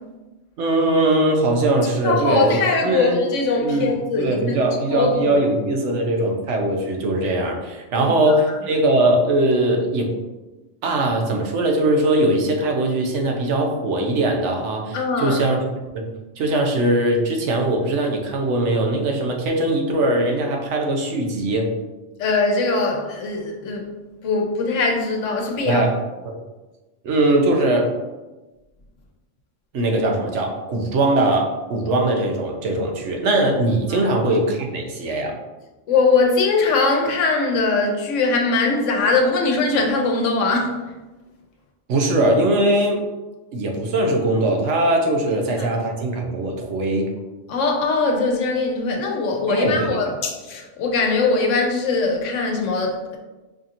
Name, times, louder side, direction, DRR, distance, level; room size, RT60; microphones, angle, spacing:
voice 1, 0.6-3.2 3.6-3.8 4.2-10.1 10.8-15.7 15.9-16.1 16.4-21.7 25.6-25.9 26.2-26.3 27.0-27.9 29.7-35.3 41.9-43.0 43.5-47.1 49.5-50.0, right 1 dB, 75° right, 2 dB, 1.0 m, -20 dB
voice 2, 2.0-4.6 4.9-5.4 8.0-8.1 14.9-15.4 22.2-23.9 24.2-25.9 33.9-34.1 35.9-40.7 47.5-53.2, left 3 dB, 90° left, 2 dB, 1.0 m, -21 dB
4.9 x 2.8 x 2.5 m, 1.1 s
omnidirectional pair, 1.2 m